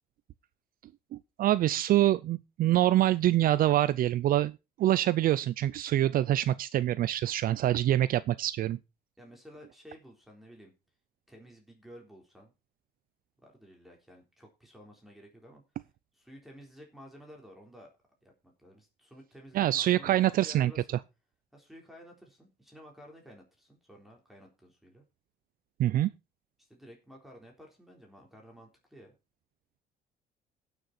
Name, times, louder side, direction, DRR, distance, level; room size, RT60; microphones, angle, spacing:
voice 1, 1.1-4.5 4.8-8.8 19.5-20.7 25.8-26.1, right 13 dB, 60° right, 0.5 m, -25 dB
voice 2, 9.2-10.7 11.3-12.5 13.4-15.6 16.1-17.9 18.2-21.0 21.5-25.1 26.6-29.1, equal, ahead, 3.9 m, -53 dB
17.5 x 6.7 x 4.3 m
cardioid pair, 110°, 17 cm